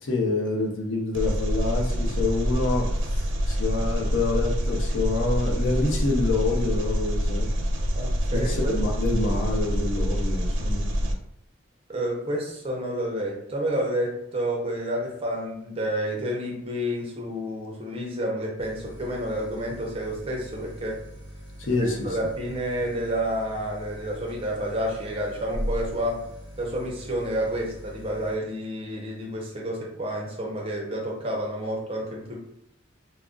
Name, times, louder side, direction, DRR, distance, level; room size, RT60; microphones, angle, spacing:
voice 1, 0.0-7.5 8.3-11.1 21.6-22.2, left 3 dB, 85° left, 1 dB, 0.6 m, -27 dB
Engine, 1.1-11.1, equal, 75° right, 0.4 m, -26 dB
voice 2, 7.9-8.8 11.9-21.0 21.7-26.2 26.6-32.4, right 1 dB, 30° right, -1 dB, 0.6 m, -30 dB
sound 1, 18.6-28.4, equal, 25° left, 0.9 m, -40 dB
2.4 x 2.0 x 3.6 m, 0.74 s
head